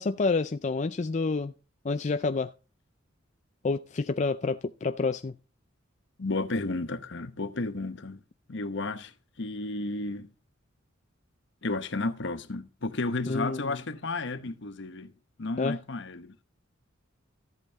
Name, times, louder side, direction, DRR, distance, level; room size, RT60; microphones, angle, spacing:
voice 1, 0.0-1.5 1.8-2.5 3.6-5.3 13.3-13.8 15.6-15.8, left 4 dB, 35° left, 0.4 m, -28 dB
voice 2, 6.2-8.2 8.5-9.1 9.4-10.3 11.6-15.1 15.4-16.3, left 2 dB, 60° left, 1.0 m, -32 dB
14.0 x 8.3 x 3.5 m
head